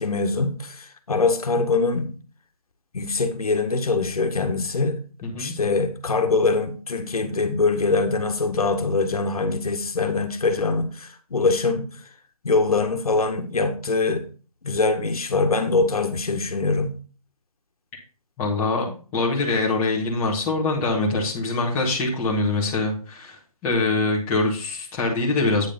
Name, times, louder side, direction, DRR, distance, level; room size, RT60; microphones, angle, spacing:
voice 1, 0.0-2.1 2.9-5.0 5.4-11.9 12.4-14.2 14.6-16.9, left 3 dB, 70° left, 1.6 m, -23 dB
voice 2, 5.2-5.5 17.9-18.0 18.4-25.7, left 3 dB, 10° left, 1.7 m, -24 dB
9.1 x 5.0 x 5.2 m
hypercardioid pair, 165°, 19 cm